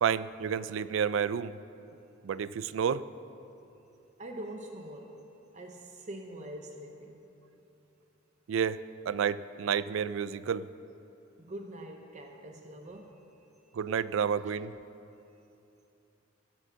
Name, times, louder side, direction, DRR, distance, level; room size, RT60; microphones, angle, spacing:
voice 1, 0.0-1.6 2.2-3.1 8.5-10.6 13.7-14.7, right 7 dB, 70° right, 16 dB, 0.3 m, -30 dB
voice 2, 4.2-5.2 5.5-7.3 11.4-13.3 14.4-14.5, right 1 dB, 35° right, 3 dB, 0.7 m, -44 dB
16.0 x 5.7 x 7.4 m, 2.8 s
head